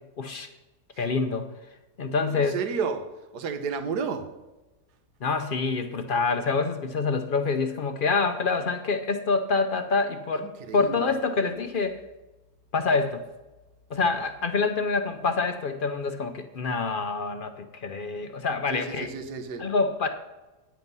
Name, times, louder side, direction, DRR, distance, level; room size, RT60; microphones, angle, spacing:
voice 1, 0.2-0.5 1.0-1.5 2.0-2.6 5.2-12.0 12.7-13.2 13.9-19.1 19.6-20.1, left 4 dB, 60° left, 7 dB, 0.5 m, -26 dB
voice 2, 2.3-4.3 10.4-11.1 18.7-19.7, right 5 dB, 80° right, 8 dB, 1.5 m, -32 dB
9.4 x 7.6 x 5.4 m, 1.1 s
omnidirectional pair, 1.7 m